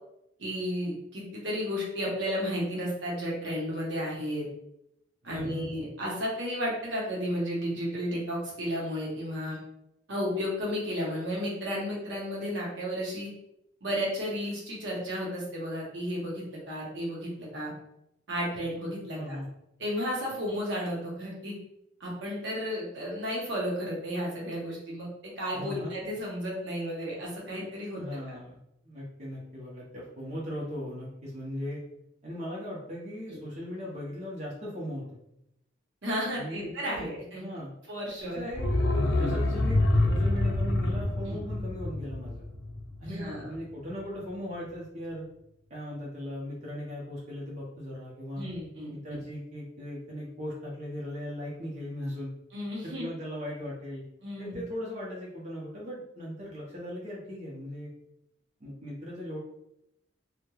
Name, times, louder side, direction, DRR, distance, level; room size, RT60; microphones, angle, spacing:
voice 1, 0.4-4.4 5.2-9.6 10.1-13.3 13.8-17.7 18.3-19.4 19.8-21.5 22.0-28.0 33.3-33.4 36.0-37.6 37.9-38.4 41.3-41.4 43.0-43.5 48.4-49.2 52.5-53.1 54.2-54.6, equal, 70° right, -3 dB, 0.8 m, -33 dB
voice 2, 5.3-5.7 19.1-19.5 25.5-25.9 27.9-28.6 28.8-31.8 32.2-35.1 36.3-37.1 37.4-37.7 38.2-42.4 43.0-45.3 45.7-48.5 48.9-52.3 52.8-54.0 54.4-57.9 58.6-59.4, equal, 35° right, -6 dB, 0.6 m, -38 dB
sound 1, 38.5-43.3 43.6-43.7, left 2 dB, 65° left, 0.5 m, -27 dB
3.0 x 2.1 x 2.3 m, 0.81 s
head